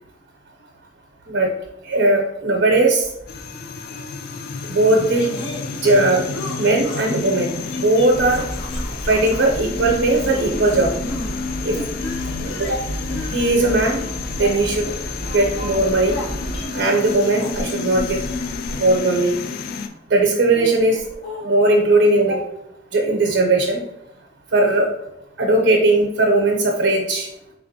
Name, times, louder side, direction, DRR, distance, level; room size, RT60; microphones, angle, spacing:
voice 1, 1.8-3.1 4.6-5.3 5.8-6.3 6.6-8.5 9.1-10.9 11.6-11.8 12.4-12.8 13.2-14.0 14.4-14.8 15.3-16.2 16.7-18.2 18.8-19.3 20.1-21.0 21.4-22.4 22.9-23.8 24.5-24.9 25.4-27.3, right 2 dB, 90° right, 0 dB, 0.6 m, -18 dB
sound 1, 3.3-19.9, left 4 dB, 55° left, 0.3 m, -31 dB
sound 2, 5.1-7.2 7.7-9.6 9.8-11.4 11.7-19.7 20.5-21.8, left 1 dB, 70° left, 0.7 m, -35 dB
sound 3, 8.1-16.6, right 1 dB, 15° left, 0.6 m, -32 dB
3.5 x 3.3 x 2.6 m, 0.86 s
head